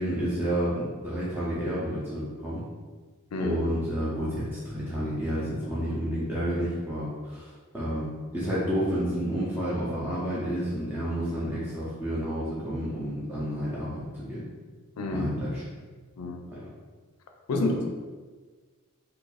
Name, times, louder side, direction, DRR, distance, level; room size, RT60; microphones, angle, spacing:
voice 1, 0.0-2.6 3.4-7.5 7.7-14.4 15.1-15.6 16.5-16.6 17.5-17.6, equal, 10° right, -9 dB, 0.6 m, -30 dB
voice 2, 15.0-15.3 16.2-16.5 17.5-17.9, left 2 dB, 85° left, 3 dB, 0.4 m, -29 dB
2.7 x 2.5 x 3.9 m, 1.4 s
head